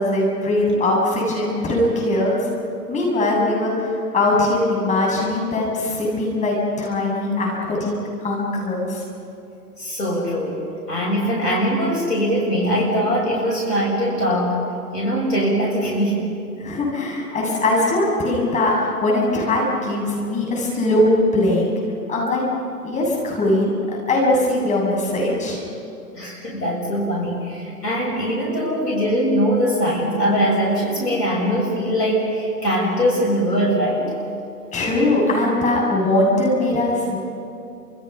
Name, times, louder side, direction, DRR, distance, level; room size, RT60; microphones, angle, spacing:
voice 1, 0.0-2.5 2.9-7.9 8.2-9.0 16.6-21.7 22.1-22.4 22.8-25.6 34.7-37.2, left 1 dB, 15° left, -2 dB, 7.5 m, -21 dB
voice 2, 9.8-10.6 10.9-14.6 14.9-16.3 26.1-34.1, equal, 80° left, -2 dB, 6.9 m, -21 dB
30.0 x 27.5 x 5.7 m, 2.7 s
figure-of-eight pair, 125°, 48 cm